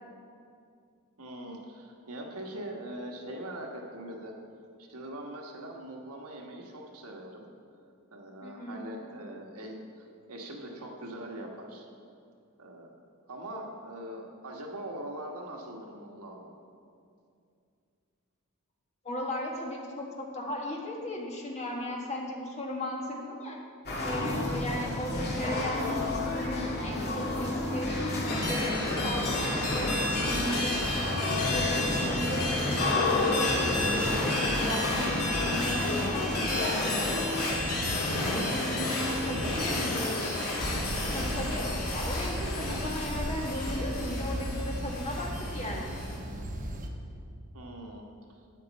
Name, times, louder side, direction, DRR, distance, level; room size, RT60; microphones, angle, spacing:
voice 1, 1.2-4.3 4.8-7.5 8.1-11.8 12.6-12.9 13.3-16.6 38.6-39.0 47.5-48.0, right 1 dB, 75° right, 1 dB, 1.4 m, -42 dB
voice 2, 8.4-8.8 19.0-23.6 24.0-27.9 28.3-30.9 31.5-32.5 32.8-37.3 38.2-40.4 41.1-46.0, left 1 dB, 30° left, -1 dB, 1.5 m, -36 dB
sound 1, 23.8-37.5, left 2 dB, 50° left, 2.1 m, -31 dB
sound 2, 28.3-46.2, left 1 dB, 85° left, 2.2 m, -31 dB
sound 3, 40.6-46.9, right 1 dB, 35° right, 1.0 m, -36 dB
12.5 x 9.2 x 4.1 m, 2.4 s
head